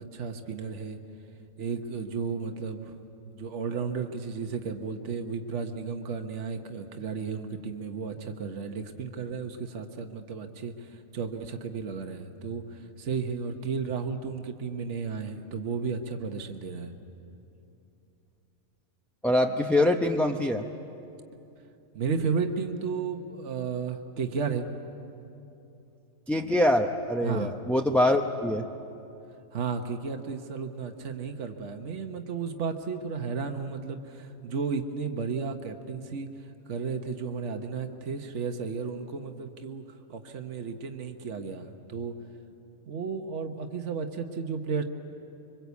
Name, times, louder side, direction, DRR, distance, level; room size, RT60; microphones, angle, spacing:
voice 1, 0.1-1.0 1.6-3.0 3.2-16.9 21.9-24.7 27.2-27.5 29.5-36.3 36.7-39.8 40.1-42.1 42.9-44.8, right 5 dB, 60° right, 5 dB, 1.4 m, -33 dB
voice 2, 19.2-20.6 26.3-28.7, left 1 dB, ahead, 2 dB, 0.5 m, -24 dB
26.0 x 23.5 x 8.3 m, 2.8 s
omnidirectional pair, 1.4 m